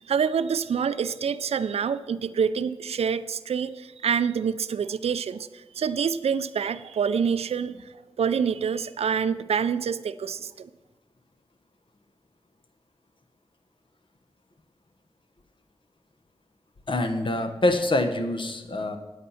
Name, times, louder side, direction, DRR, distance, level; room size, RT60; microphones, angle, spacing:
voice 1, 0.0-10.7, right 7 dB, 70° right, 13 dB, 0.4 m, -27 dB
voice 2, 16.9-19.0, left 1 dB, 50° left, 7 dB, 1.1 m, -25 dB
9.8 x 8.4 x 5.7 m, 1.2 s
cardioid pair, 60°, 11 cm